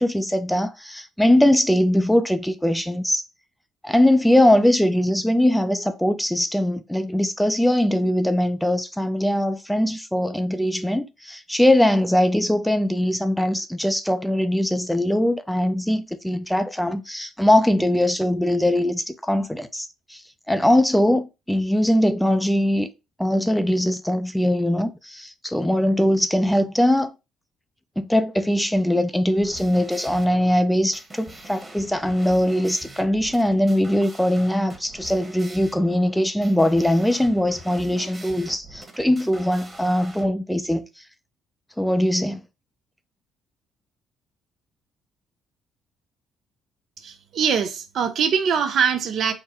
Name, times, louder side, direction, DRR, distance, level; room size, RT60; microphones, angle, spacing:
voice 1, 0.0-3.2 3.8-22.9 23.2-27.1 28.0-41.0 41.8-42.4, left 1 dB, 5° left, 0.4 m, -21 dB
sound 1, 29.3-40.3, right 1 dB, 20° right, 1.1 m, -43 dB
voice 2, 47.0-49.3, right 7 dB, 65° right, 0.6 m, -23 dB
3.8 x 2.1 x 4.2 m
supercardioid pair, 70°, 0 cm